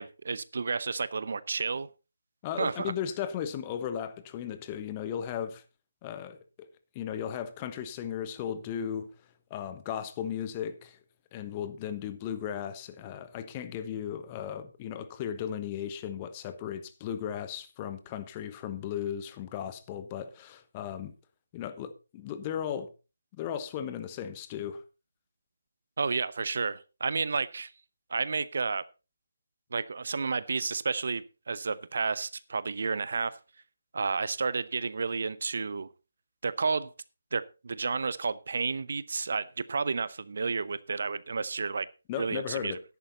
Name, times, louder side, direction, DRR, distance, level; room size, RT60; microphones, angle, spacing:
voice 1, 0.0-1.9 2.6-2.9 26.0-27.7 28.1-28.8 29.7-33.4 33.9-35.9 36.4-36.9 37.3-41.9 42.2-42.8, right 4 dB, 50° right, 0.7 m, -31 dB
voice 2, 2.4-5.6 6.0-6.7 6.9-9.1 9.5-11.0 11.3-21.1 21.5-22.9 23.3-24.8 42.1-42.8, left 9 dB, 20° left, 1.2 m, -36 dB
13.0 x 11.0 x 4.0 m
figure-of-eight pair, 150°, 0 cm